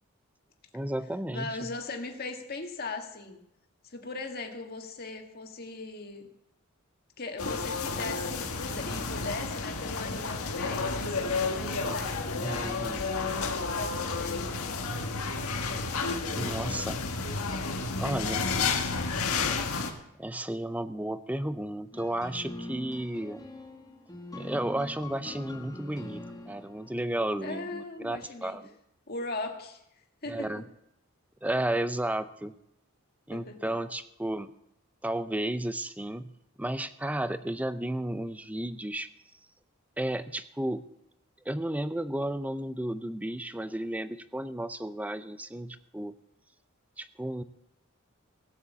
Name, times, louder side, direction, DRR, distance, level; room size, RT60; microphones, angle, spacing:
voice 1, 0.7-1.7 12.4-13.1 16.3-17.0 18.0-18.5 20.2-23.4 24.3-28.8 30.3-30.6 31.4-32.5 33.3-34.5 35.0-36.3 36.6-39.1 40.0-40.9 41.4-46.1 47.0-47.4, right 1 dB, 5° right, 12 dB, 0.5 m, -33 dB
voice 2, 1.3-3.4 3.8-6.3 7.2-13.4 13.7-14.6 15.5-16.2 27.4-28.6 29.1-29.8 30.2-30.6 33.3-33.7, left 3 dB, 45° left, 4 dB, 1.8 m, -39 dB
sound 1, 7.4-19.9, left 4 dB, 80° left, 1.6 m, -31 dB
sound 2, 21.9-27.4, left 1 dB, 15° left, 1.3 m, -43 dB
16.5 x 6.6 x 8.2 m, 0.80 s
head